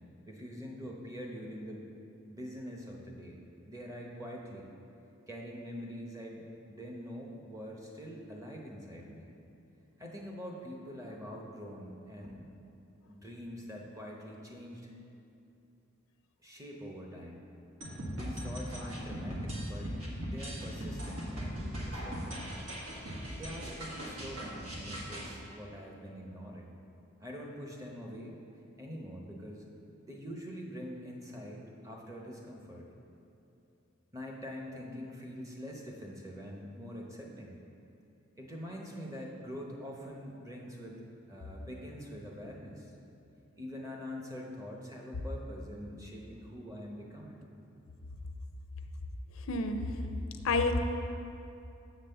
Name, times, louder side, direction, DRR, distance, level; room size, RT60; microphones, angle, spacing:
voice 1, 0.3-1.9 2.3-3.4 3.7-4.7 5.3-9.3 10.0-12.5 13.1-14.9 16.4-17.4 18.1-22.4 23.4-26.7 27.2-28.4 28.8-29.7 30.1-32.9 34.1-37.6 38.4-42.9 43.6-47.4, equal, 15° right, -1 dB, 0.8 m, -44 dB
sound 1, 17.8-25.3, equal, 90° right, 1.5 m, -39 dB
voice 2, 49.4-50.1 50.4-50.8, left 3 dB, 75° left, 6 dB, 0.5 m, -29 dB
6.9 x 4.0 x 6.6 m, 2.7 s
head